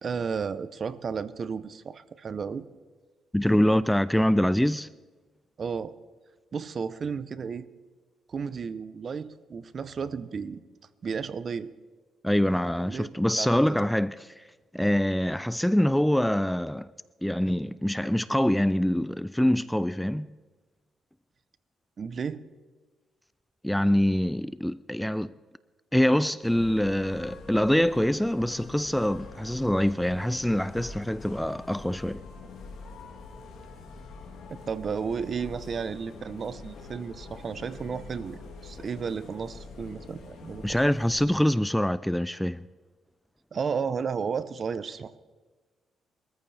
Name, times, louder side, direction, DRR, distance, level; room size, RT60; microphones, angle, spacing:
voice 1, 0.0-2.7 5.6-5.9 6.5-7.7 8.3-10.6 11.0-11.7 12.9-13.8 22.0-22.4 34.7-40.8 43.5-45.2, right 6 dB, 45° right, 0.7 m, -33 dB
voice 2, 3.3-4.9 12.2-14.4 14.7-16.9 17.2-20.3 23.6-25.3 25.9-32.2 40.6-42.7, left 1 dB, 5° left, 0.3 m, -25 dB
sound 1, 26.4-41.3, left 3 dB, 70° left, 3.0 m, -45 dB
22.5 x 14.0 x 3.4 m
cardioid pair, 90°, 0 cm